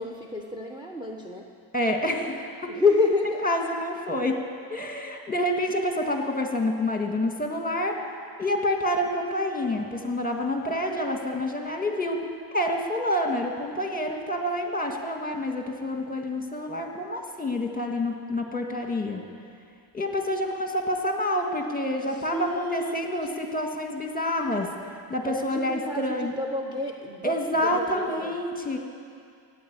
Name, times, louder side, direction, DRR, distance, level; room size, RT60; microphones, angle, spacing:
voice 1, 0.0-1.5 2.7-3.4 22.0-23.1 25.2-27.4 27.6-28.3, left 3 dB, 10° right, 2 dB, 1.0 m, -28 dB
voice 2, 1.7-2.7 3.4-4.4 4.7-8.0 8.4-19.2 19.9-26.3 27.2-28.8, left 1 dB, 20° left, 3 dB, 1.7 m, -28 dB
15.0 x 9.1 x 8.8 m, 2.3 s
wide cardioid pair, 95°, 47 cm